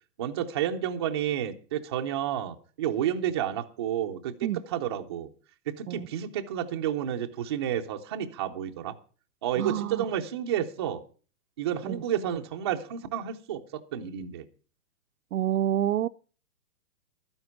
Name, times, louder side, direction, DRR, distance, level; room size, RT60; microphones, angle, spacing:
voice 1, 0.2-4.4 4.7-5.3 5.8-8.9 9.4-11.0 11.6-14.5, right 10 dB, 20° right, 0.5 m, -30 dB
voice 2, 9.6-10.1 11.8-12.0 15.3-16.1, right 11 dB, 70° right, 0.6 m, -28 dB
12.5 x 9.6 x 5.8 m
hypercardioid pair, 155°, 44 cm